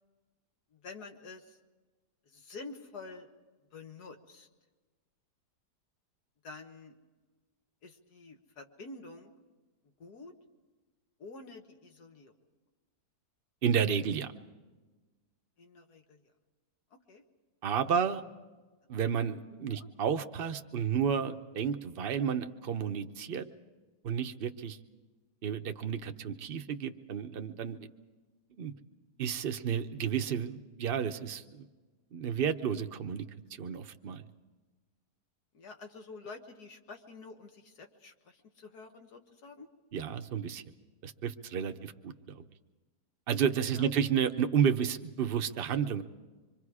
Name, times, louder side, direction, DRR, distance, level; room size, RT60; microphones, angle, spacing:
voice 1, 0.7-1.6 2.3-3.3 3.7-4.5 6.4-7.0 7.8-9.3 10.0-10.3 11.2-12.3 15.6-16.2 16.9-17.2 19.7-19.9 35.5-39.7 41.7-41.8 43.7-43.9, left 3 dB, 75° left, 4 dB, 2.0 m, -48 dB
voice 2, 13.6-14.3 17.6-18.2 18.9-23.5 24.0-24.8 25.4-27.9 28.5-28.7 29.2-31.7 32.1-33.2 33.6-34.2 39.9-40.6 41.0-42.4 43.3-46.0, right 7 dB, 45° right, 7 dB, 0.8 m, -31 dB
26.0 x 24.0 x 4.9 m, 1.3 s
omnidirectional pair, 1.7 m